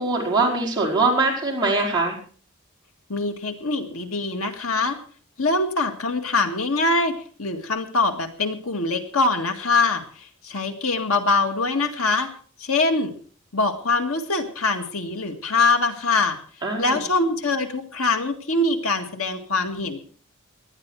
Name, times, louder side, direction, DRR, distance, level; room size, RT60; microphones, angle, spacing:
voice 1, 0.0-2.2 16.6-17.0, right 3 dB, 20° right, -2 dB, 4.9 m, -22 dB
voice 2, 3.1-5.0 5.4-12.3 12.6-13.1 13.5-16.4 16.8-20.0, left 3 dB, 85° left, 5 dB, 2.0 m, -23 dB
18.5 x 12.0 x 4.7 m, 0.41 s
head